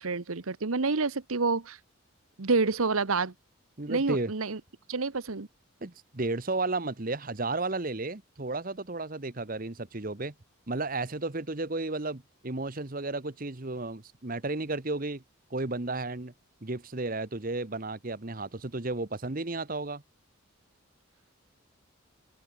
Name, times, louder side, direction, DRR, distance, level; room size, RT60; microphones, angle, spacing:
voice 1, 0.0-1.8 2.4-3.3 3.9-4.6 4.9-5.5, right 4 dB, 80° right, 1.1 m, -28 dB
voice 2, 3.8-4.3 5.8-10.3 10.7-15.2 15.5-16.3 16.6-20.0, right 2 dB, 40° right, 1.2 m, -33 dB
open air
head